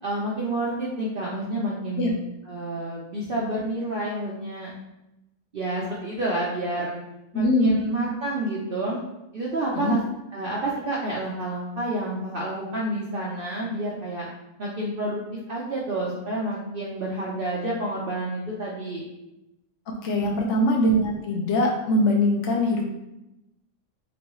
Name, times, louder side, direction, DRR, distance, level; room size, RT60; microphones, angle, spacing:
voice 1, 0.0-2.2 2.5-4.7 5.5-6.9 7.3-9.0 9.3-10.0 10.3-14.3 14.6-15.2 15.5-19.0 20.1-20.4, right 1 dB, 55° right, -5 dB, 0.7 m, -29 dB
voice 2, 7.3-7.7 9.7-10.0 20.0-22.8, left 1 dB, 70° left, 0 dB, 0.9 m, -22 dB
3.5 x 3.0 x 3.0 m, 0.92 s
omnidirectional pair, 1.4 m